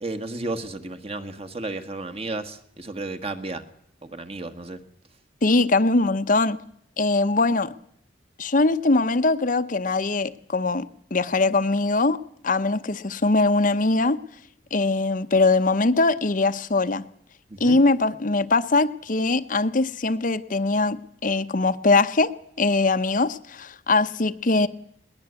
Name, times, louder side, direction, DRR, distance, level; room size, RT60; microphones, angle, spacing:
voice 1, 0.0-3.6 4.0-4.8 17.5-17.8, right 2 dB, 30° right, 8 dB, 1.7 m, -33 dB
voice 2, 5.4-6.6 7.0-7.7 8.4-12.2 12.4-14.2 14.7-17.0 17.6-22.3 22.6-24.7, left 3 dB, 45° left, 10 dB, 0.8 m, -21 dB
21.5 x 19.5 x 8.3 m, 0.69 s
head